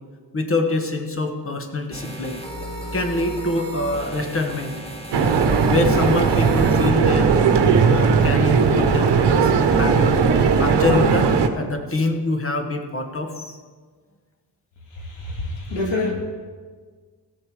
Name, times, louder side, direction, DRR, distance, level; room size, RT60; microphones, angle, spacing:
voice 1, 0.3-2.4 2.9-4.8 5.6-7.3 7.9-10.2 10.6-13.6, left 2 dB, 30° left, 5 dB, 1.4 m, -25 dB
sound 1, 1.9-6.9, equal, 15° left, 1.6 m, -34 dB
sound 2, 5.1-11.5, right 5 dB, 75° right, 1.0 m, -17 dB
voice 2, 14.9-16.1, left 2 dB, 90° left, -1 dB, 2.7 m, -26 dB
17.0 x 7.0 x 4.9 m, 1.5 s
cardioid pair, 100°, 43 cm